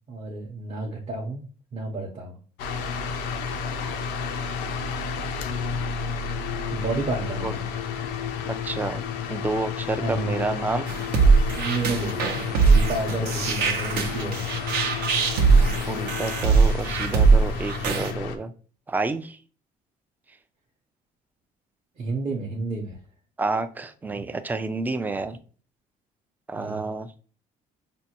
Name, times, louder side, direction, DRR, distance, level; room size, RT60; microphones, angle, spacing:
voice 1, 0.1-2.4 6.7-7.7 10.0-10.7 11.5-14.8 22.0-23.0 26.6-26.9, right 3 dB, 35° right, -2 dB, 0.7 m, -31 dB
sound 1, 2.6-18.4, left 6 dB, 90° left, 0.5 m, -31 dB
voice 2, 8.6-9.0 9.3-10.9 15.9-18.5 18.9-19.4 23.4-25.4 26.5-27.1, right 3 dB, 10° right, 10 dB, 0.3 m, -29 dB
sound 2, 10.9-18.1, right 4 dB, 80° right, 0.7 m, -21 dB
5.2 x 2.2 x 2.8 m, 0.41 s
cardioid pair, 110°, 17 cm